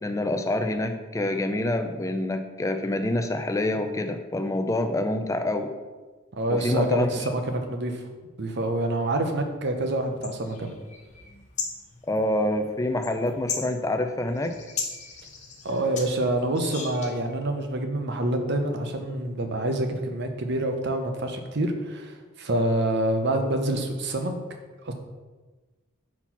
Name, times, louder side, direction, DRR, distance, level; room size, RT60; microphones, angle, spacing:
voice 1, 0.0-5.7 6.5-7.4 12.1-14.5, left 1 dB, 15° left, 6 dB, 0.4 m, -27 dB
voice 2, 6.3-8.1 8.4-10.8 15.6-24.3 24.8-24.9, right 1 dB, 55° right, 5 dB, 0.7 m, -27 dB
sound 1, 9.9-17.3, left 5 dB, 35° left, 0.8 m, -38 dB
4.3 x 4.2 x 5.7 m, 1.3 s
head